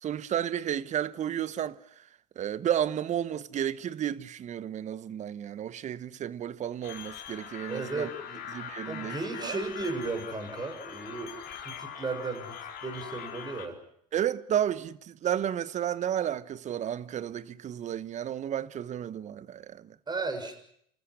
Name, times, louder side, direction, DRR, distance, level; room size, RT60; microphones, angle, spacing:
voice 1, 0.0-1.8 2.4-8.1 8.5-9.6 14.1-20.0, right 10 dB, 35° right, 1.1 m, -32 dB
sound 1, 6.8-13.7, left 8 dB, 50° left, 4.1 m, -42 dB
voice 2, 7.7-8.4 8.9-12.6 12.8-13.8 20.1-20.5, right 3 dB, 20° right, 6.8 m, -35 dB
29.5 x 14.0 x 10.0 m
hypercardioid pair, 85°, 20 cm